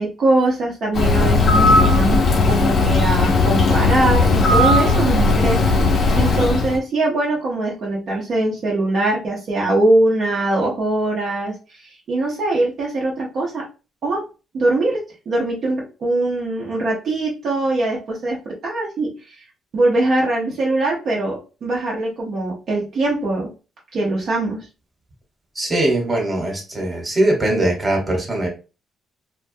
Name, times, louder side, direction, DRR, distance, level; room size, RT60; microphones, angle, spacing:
voice 1, 0.0-2.2 2.5-5.7 6.1-13.6 14.0-14.3 14.5-19.1 19.7-23.5 23.9-24.7, right 2 dB, 60° right, -3 dB, 0.7 m, -21 dB
Bird, 0.9-6.8, left 3 dB, 55° left, 0.6 m, -16 dB
voice 2, 25.5-28.5, right 1 dB, 20° right, 0 dB, 1.1 m, -21 dB
2.2 x 2.2 x 2.6 m, 0.31 s
cardioid pair, 90°, 0 cm